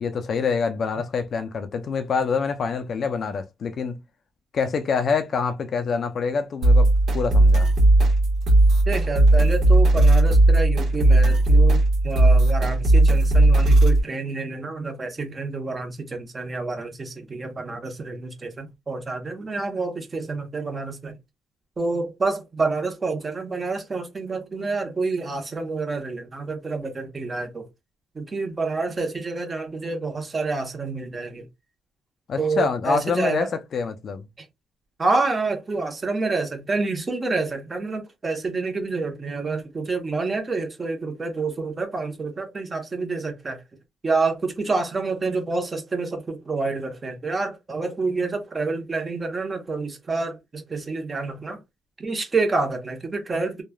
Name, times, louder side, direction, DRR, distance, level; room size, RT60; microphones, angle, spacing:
voice 1, 0.0-4.0 4.5-6.9 7.1-7.7 32.3-34.3, left 5 dB, 55° left, 0.4 m, -26 dB
sound 1, 6.6-14.0, right 2 dB, 70° right, 1.2 m, -16 dB
voice 2, 8.9-11.8 12.0-21.2 21.8-27.7 28.1-31.5 32.4-33.5 34.4-34.5 35.0-43.6 44.0-51.6 52.0-53.6, right 3 dB, 30° right, 0.9 m, -28 dB
3.1 x 2.3 x 2.2 m
cardioid pair, 90°, 0 cm